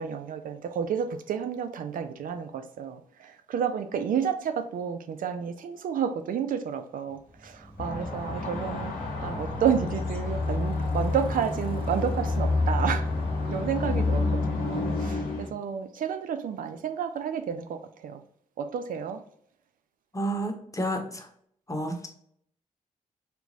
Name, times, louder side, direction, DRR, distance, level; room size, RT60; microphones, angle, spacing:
voice 1, 0.0-9.0 9.2-13.1 13.5-18.2 18.6-19.2, right 7 dB, 70° right, 0.4 m, -31 dB
Bicycle, 7.1-14.6, equal, 35° right, 1.1 m, -45 dB
sound 1, 7.8-15.5, left 3 dB, 80° left, 0.8 m, -29 dB
voice 2, 20.1-21.3 21.7-22.1, right 1 dB, 20° left, 0.9 m, -30 dB
3.3 x 3.0 x 2.6 m
supercardioid pair, 40°, 15 cm